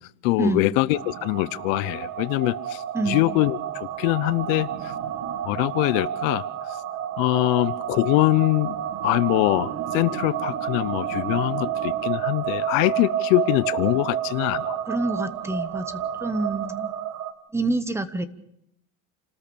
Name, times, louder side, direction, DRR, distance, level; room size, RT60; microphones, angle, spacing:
voice 1, 0.2-4.9 5.5-6.5 7.2-8.8 9.0-14.8, left 20 dB, 75° left, 17 dB, 0.9 m, -23 dB
sound 1, 0.9-17.3, right 9 dB, 40° right, 1.6 m, -30 dB
voice 2, 14.9-16.9 17.5-18.3, right 2 dB, 5° right, 12 dB, 0.9 m, -27 dB
28.5 x 13.5 x 6.9 m, 0.78 s
cardioid pair, 150°, 39 cm